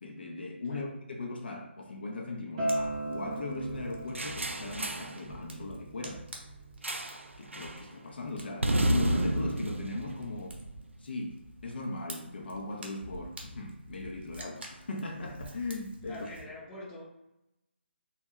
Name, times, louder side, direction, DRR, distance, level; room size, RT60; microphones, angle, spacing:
voice 1, 0.0-6.2 7.4-10.6 11.0-16.3, left 2 dB, 55° left, 1 dB, 0.6 m, -39 dB
Acoustic guitar, 2.6-7.8, right 1 dB, 25° right, 0.6 m, -38 dB
Fire, 2.7-16.4, right 1 dB, 60° right, 0.8 m, -49 dB
sound 1, 4.1-5.2 6.8-7.3 7.5-7.8 8.6-10.9, right 1 dB, 85° right, 0.3 m, -30 dB
voice 2, 16.1-17.0, left 1 dB, 15° left, -6 dB, 0.7 m, -44 dB
2.9 x 2.3 x 3.6 m, 0.91 s
figure-of-eight pair, 145°, 7 cm